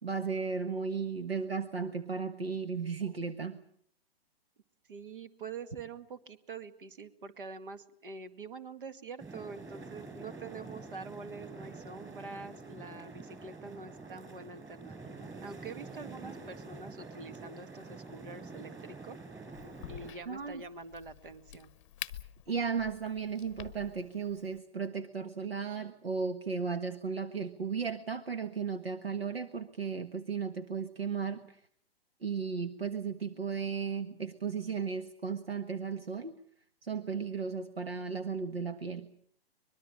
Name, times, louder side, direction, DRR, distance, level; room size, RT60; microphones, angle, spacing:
voice 1, 0.0-3.6 20.3-20.6 22.5-31.6 32.2-36.3 36.8-39.1, right 5 dB, 75° right, 9 dB, 1.5 m, -35 dB
voice 2, 4.9-19.2 19.9-21.7, right 4 dB, 55° right, 10 dB, 2.2 m, -45 dB
sound 1, 9.2-20.1, right 3 dB, 10° right, 6.2 m, -47 dB
Crack, 19.5-24.6, left 12 dB, 30° left, 0.9 m, -48 dB
24.5 x 22.0 x 7.3 m, 0.64 s
figure-of-eight pair, 120°, 31 cm